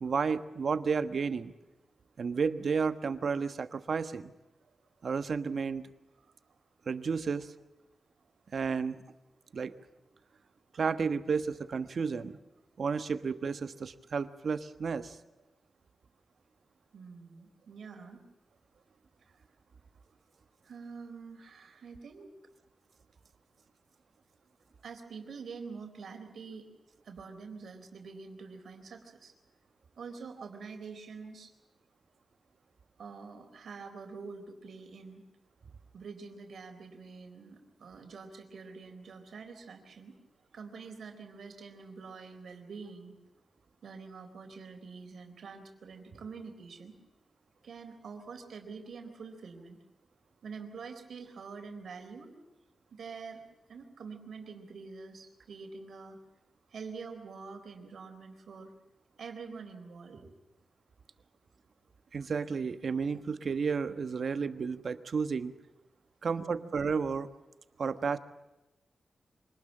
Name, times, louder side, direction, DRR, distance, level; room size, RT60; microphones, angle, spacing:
voice 1, 0.0-1.5 2.2-4.2 5.0-5.8 6.9-7.5 8.5-9.0 9.5-9.7 10.7-12.4 12.8-15.2 62.1-65.5 66.2-67.3 67.8-68.2, right 5 dB, 60° right, 11 dB, 1.3 m, -32 dB
voice 2, 16.9-18.3 19.2-19.3 20.6-22.3 24.8-26.7 27.0-29.3 30.0-31.5 33.0-35.2 35.9-40.2 40.5-43.1 43.8-47.0 47.6-49.8 50.4-52.4 52.9-53.4 53.7-56.2 56.7-58.7 59.2-60.4 66.2-66.7, right 5 dB, 80° right, 5 dB, 4.0 m, -46 dB
25.5 x 19.0 x 7.4 m, 1.0 s
wide cardioid pair, 100°, 0 cm